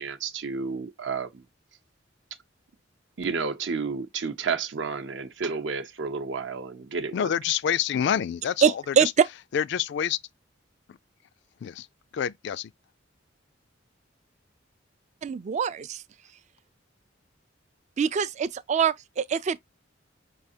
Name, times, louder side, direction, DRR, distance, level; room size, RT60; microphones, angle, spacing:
voice 1, 0.0-1.4 3.2-7.3, right 5 dB, 70° right, 0.7 m, -31 dB
voice 2, 7.1-9.1 9.5-10.2 11.6-11.9 12.1-12.7, left 8 dB, 60° left, 0.3 m, -27 dB
voice 3, 8.6-9.3 15.2-16.0 18.0-19.6, right 7 dB, 35° right, 0.3 m, -24 dB
5.5 x 3.4 x 2.7 m
head